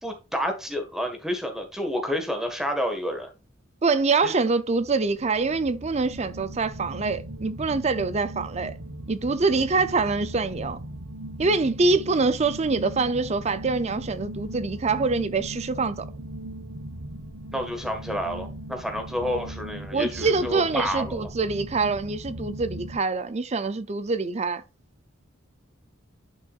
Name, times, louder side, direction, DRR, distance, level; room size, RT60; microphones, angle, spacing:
voice 1, 0.0-3.3 4.2-4.3 17.5-21.3, equal, ahead, 1.6 m, -29 dB
voice 2, 3.8-8.7 9.1-10.8 11.4-16.1 19.9-24.6, right 3 dB, 35° right, 0.5 m, -25 dB
sound 1, 4.8-23.0, right 1 dB, 70° right, 1.3 m, -38 dB
10.5 x 5.8 x 2.5 m
head